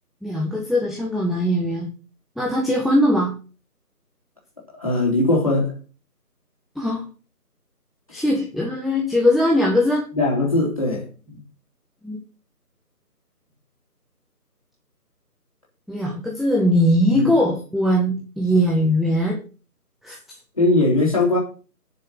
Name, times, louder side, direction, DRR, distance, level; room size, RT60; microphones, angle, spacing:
voice 1, 0.2-1.9 2.4-3.3 6.8-7.1 8.1-10.0 12.0-12.2 15.9-19.4 20.0-20.2, equal, ahead, 0.8 m, -20 dB
voice 2, 4.7-5.7 10.1-11.4 17.1-17.4 20.6-21.4, left 2 dB, 20° left, 3.8 m, -20 dB
10.0 x 6.6 x 6.5 m
figure-of-eight pair, 180°, 48 cm